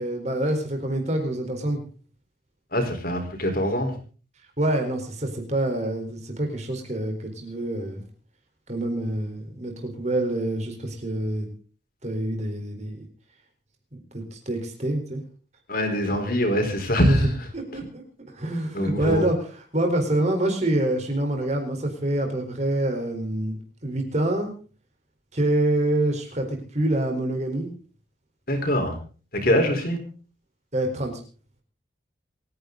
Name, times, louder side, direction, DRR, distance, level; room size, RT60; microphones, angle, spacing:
voice 1, 0.0-1.8 4.6-8.0 8.7-11.5 12.0-13.0 14.1-15.2 17.1-17.2 17.5-18.0 18.3-19.4 19.7-23.5 23.8-24.5 25.3-27.7 29.5-29.7 30.7-31.1, right 1 dB, 35° right, 4 dB, 4.2 m, -26 dB
voice 2, 2.7-3.9 15.7-17.3 18.7-19.3 28.5-29.0 29.3-30.0, equal, 50° left, 5 dB, 4.3 m, -23 dB
27.5 x 10.5 x 4.0 m, 0.39 s
head